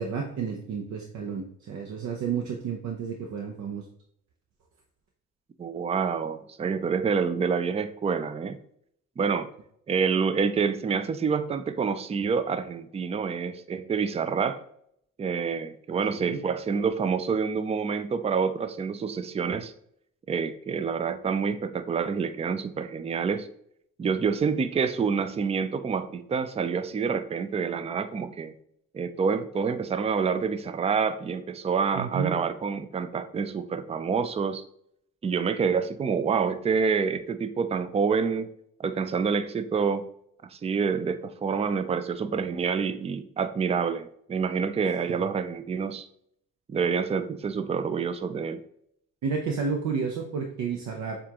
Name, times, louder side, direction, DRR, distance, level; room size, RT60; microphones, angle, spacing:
voice 1, 0.0-3.8 16.1-16.4 31.9-32.4 45.1-45.3 49.2-51.2, right 6 dB, 70° right, 1 dB, 0.7 m, -31 dB
voice 2, 5.6-8.6 9.2-9.5 9.9-14.6 15.2-19.7 20.3-23.5 24.0-28.5 28.9-34.6 35.2-38.5 38.8-40.0 40.5-46.1 46.7-48.6, right 5 dB, 20° right, 11 dB, 0.4 m, -27 dB
6.7 x 2.5 x 2.8 m, 0.69 s
cardioid pair, 90°, 30 cm